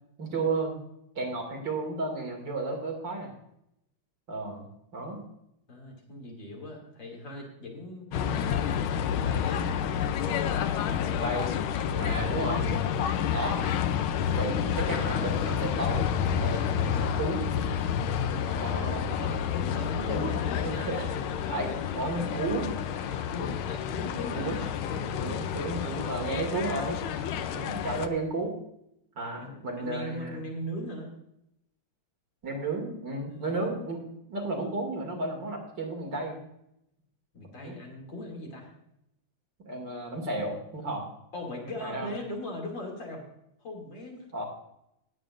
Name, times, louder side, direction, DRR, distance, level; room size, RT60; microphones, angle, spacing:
voice 1, 0.2-0.8 1.1-3.3 4.3-4.6 4.9-5.2 11.1-11.5 12.0-12.6 13.3-13.6 14.3-16.1 16.4-17.5 18.4-19.3 20.1-20.2 20.6-21.1 21.5-22.7 24.3-24.6 25.2-27.0 27.5-28.5 29.2-30.4 32.4-34.0 34.3-36.4 37.6-37.8 39.7-41.1 41.8-42.1 44.3-44.4, right 2 dB, 60° right, 0 dB, 3.0 m, -33 dB
voice 2, 5.7-9.7 11.7-12.3 18.7-20.7 22.9-25.6 27.3-28.1 29.4-31.1 33.3-33.7 37.3-38.7 41.3-43.2 43.6-44.2, left 1 dB, 60° left, 0 dB, 3.3 m, -40 dB
sound 1, 8.1-28.1, left 8 dB, 85° left, 1.6 m, -29 dB
19.0 x 9.0 x 2.5 m, 0.80 s
omnidirectional pair, 2.2 m